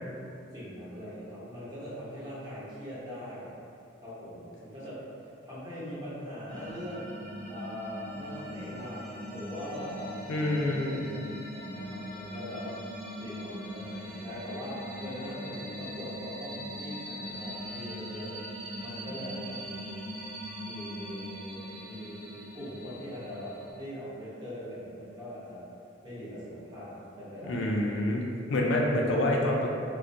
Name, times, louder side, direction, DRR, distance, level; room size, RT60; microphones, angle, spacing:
voice 1, 0.5-3.5 4.0-5.1 5.4-7.1 7.5-11.1 11.5-12.8 13.2-18.4 18.8-20.1 20.6-25.7 26.0-28.2, equal, 25° right, -10 dB, 0.8 m, -41 dB
sound 1, 6.5-23.7, equal, 90° right, 0.6 m, -41 dB
voice 2, 10.3-11.0 27.5-28.2 28.5-29.7, left 1 dB, 85° left, -1 dB, 0.4 m, -27 dB
2.3 x 2.1 x 2.6 m, 2.5 s
head